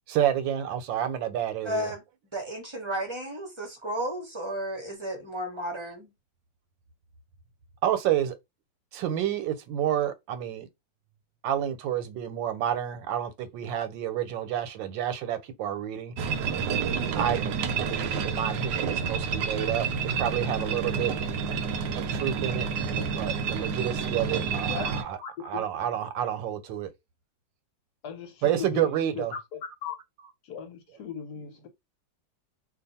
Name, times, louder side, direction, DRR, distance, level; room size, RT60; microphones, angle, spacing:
voice 1, 0.1-1.9 7.8-8.4 8.9-10.7 11.4-16.1 17.1-17.4 17.8-19.9 20.2-21.1 22.0-22.7 23.1-26.9 28.4-29.3, right 10 dB, 90° right, 1.4 m, -29 dB
voice 2, 1.6-2.0 2.3-6.1, equal, 25° right, 0.6 m, -33 dB
sound 1, 16.2-25.0, right 6 dB, 75° right, 1.1 m, -29 dB
voice 3, 25.2-25.6 28.0-29.2 29.8-30.0 30.4-31.7, left 7 dB, 65° left, 1.1 m, -37 dB
2.7 x 2.5 x 4.1 m
omnidirectional pair, 2.0 m